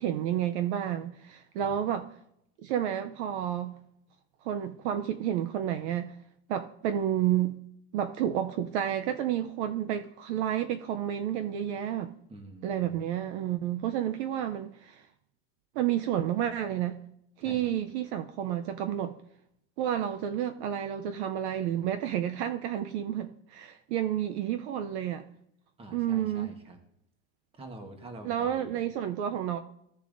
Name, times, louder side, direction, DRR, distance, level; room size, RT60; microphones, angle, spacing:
voice 1, 0.0-2.1 2.6-3.8 4.4-6.1 6.5-7.6 7.9-12.1 12.6-15.0 15.8-17.0 17.4-19.1 19.8-25.3 25.9-26.5 28.2-29.6, right 10 dB, 55° right, 0.6 m, -30 dB
voice 2, 12.3-13.0 17.4-17.7 25.8-26.8 27.6-28.7, right 2 dB, 15° right, 1.2 m, -46 dB
16.0 x 6.8 x 2.6 m
supercardioid pair, 165°, 42 cm